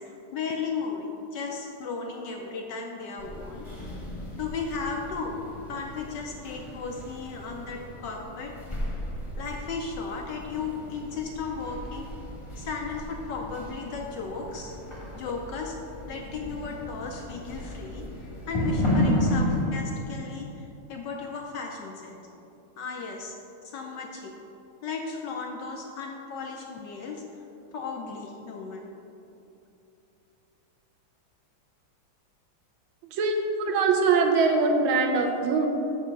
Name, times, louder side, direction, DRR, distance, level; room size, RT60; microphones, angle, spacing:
voice 1, 0.0-4.0 4.3-8.5 9.4-12.1 12.6-14.8 15.1-15.7 16.1-22.2 22.8-23.4 23.6-24.3 24.8-27.4 27.7-28.9, left 4 dB, 75° left, 1 dB, 1.0 m, -35 dB
sound 1, 3.2-19.7, left 1 dB, 20° left, 0.8 m, -33 dB
voice 2, 33.0-35.7, right 4 dB, 75° right, 3 dB, 1.4 m, -23 dB
5.6 x 4.9 x 6.4 m, 2.9 s
omnidirectional pair, 2.3 m